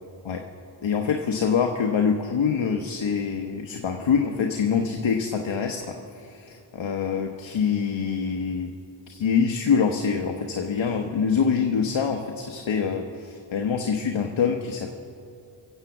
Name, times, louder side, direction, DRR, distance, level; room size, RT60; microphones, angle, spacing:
voice 1, 0.8-8.7 9.1-14.9, left 6 dB, 75° left, 3 dB, 1.1 m, -25 dB
24.0 x 8.1 x 7.2 m, 2.8 s
cardioid pair, 55°, 47 cm